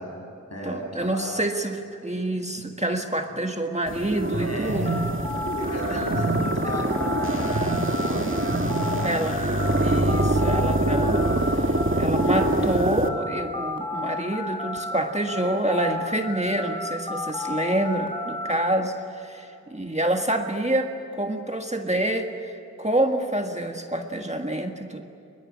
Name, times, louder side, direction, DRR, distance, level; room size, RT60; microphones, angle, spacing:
voice 1, 0.0-1.4 3.3-3.4 4.4-5.0 5.6-9.3, equal, 50° left, 0 dB, 7.5 m, -35 dB
voice 2, 0.6-4.9 9.0-9.4 9.8-11.3 11.7-25.0, right 1 dB, 20° right, 4 dB, 1.6 m, -27 dB
sound 1, 3.9-13.1, right 1 dB, 40° right, 1.9 m, -24 dB
sound 2, 4.8-15.0 15.3-18.5, left 1 dB, 15° left, 3.5 m, -32 dB
22.0 x 21.0 x 9.8 m, 2.7 s
wide cardioid pair, 40°, 32 cm